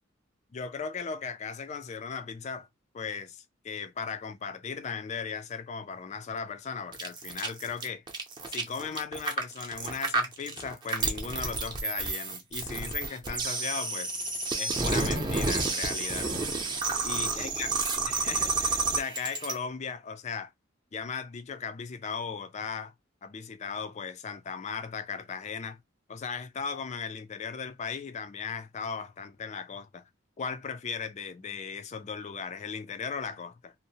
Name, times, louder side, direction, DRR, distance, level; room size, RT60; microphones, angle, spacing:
voice 1, 0.5-2.7 2.9-8.0 8.5-14.1 14.6-16.3 17.0-17.7 18.0-20.5 20.9-22.9 23.2-25.8 26.1-30.0 30.4-33.7, left 6 dB, 35° left, 0.4 m, -37 dB
sound 1, 6.9-19.5, right 3 dB, 20° right, 0.6 m, -30 dB
2.7 x 2.0 x 2.7 m
head